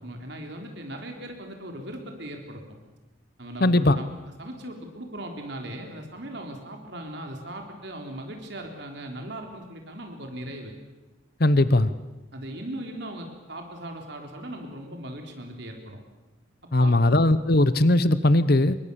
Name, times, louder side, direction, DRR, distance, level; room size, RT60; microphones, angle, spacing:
voice 1, 0.0-2.6 3.4-4.1 4.4-10.7 12.3-16.0 16.8-17.1, right 1 dB, 55° right, 3 dB, 3.8 m, -38 dB
voice 2, 3.6-4.0 11.4-11.9 16.7-18.8, left 1 dB, 50° left, 14 dB, 0.9 m, -19 dB
27.0 x 23.5 x 7.0 m, 1.1 s
head